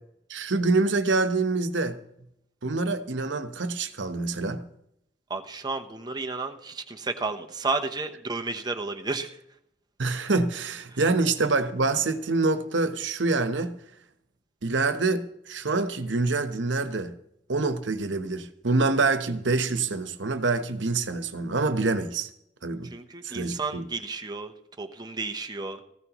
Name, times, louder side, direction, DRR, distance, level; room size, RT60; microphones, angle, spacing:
voice 1, 0.3-2.0 2.6-4.6 10.0-13.8 14.6-17.1 17.5-22.3 22.6-22.9 23.2-23.9, right 3 dB, 90° right, 1.1 m, -26 dB
voice 2, 5.3-9.4 22.8-25.8, right 3 dB, 20° right, 0.9 m, -32 dB
18.0 x 15.0 x 3.0 m
head